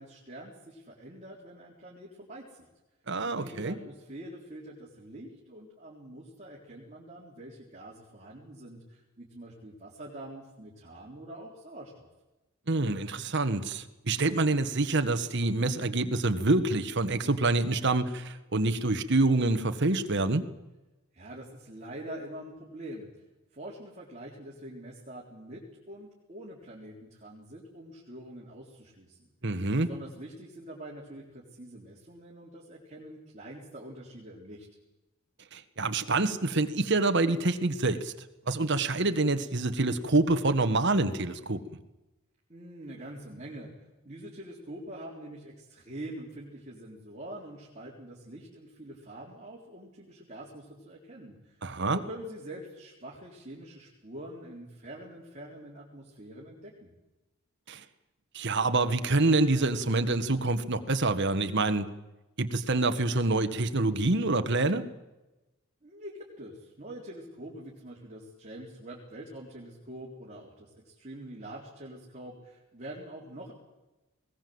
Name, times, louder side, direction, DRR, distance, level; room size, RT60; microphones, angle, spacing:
voice 1, 0.0-2.7 3.3-12.1 21.1-23.1 23.5-29.3 29.8-34.7 42.5-43.7 44.0-51.6 51.9-56.9 65.8-73.5, right 1 dB, 35° right, -3 dB, 3.8 m, -45 dB
voice 2, 3.1-3.8 12.7-20.4 29.4-29.9 35.5-38.1 38.5-41.6 51.6-52.0 57.7-57.8 58.3-61.9 62.4-64.8, right 2 dB, 55° right, 9 dB, 1.4 m, -26 dB
20.5 x 18.5 x 7.9 m, 1.0 s
head